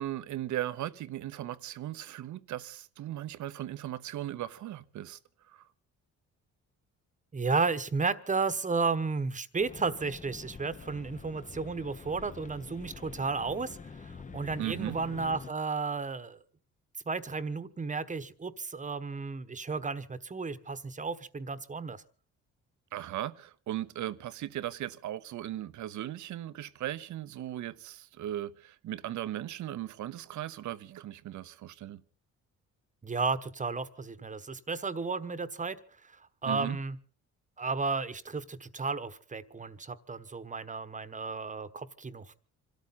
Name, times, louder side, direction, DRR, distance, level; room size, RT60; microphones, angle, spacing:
voice 1, 0.0-5.2 5.5-5.7 14.6-15.0 22.9-32.0 36.4-36.8, right 13 dB, 75° right, 0.9 m, -37 dB
voice 2, 7.3-16.4 17.1-22.0 33.0-35.8 36.0-37.0 37.6-42.3, right 4 dB, 25° right, 1.2 m, -33 dB
sound 1, 9.6-15.5, left 5 dB, 25° left, 0.9 m, -46 dB
26.5 x 13.0 x 4.1 m
cardioid pair, 90°, 30 cm